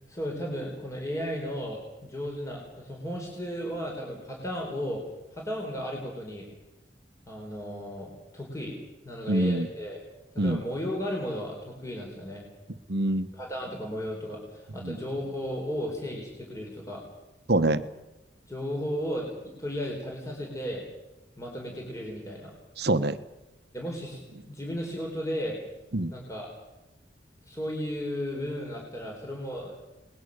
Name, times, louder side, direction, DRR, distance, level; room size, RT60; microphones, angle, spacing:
voice 1, 0.1-5.0 5.3-6.5 7.3-8.8 9.0-10.0 10.3-12.4 13.3-17.0 18.5-20.8 21.4-22.5 23.7-25.6 26.1-26.5 27.4-29.9, equal, 20° left, 0 dB, 4.4 m, -34 dB
voice 2, 9.3-9.7 10.4-10.6 12.9-13.3 14.8-15.0 17.5-17.8 22.8-23.2 25.9-26.1, right 1 dB, 65° right, 11 dB, 1.1 m, -24 dB
29.0 x 20.0 x 6.7 m, 1.0 s
head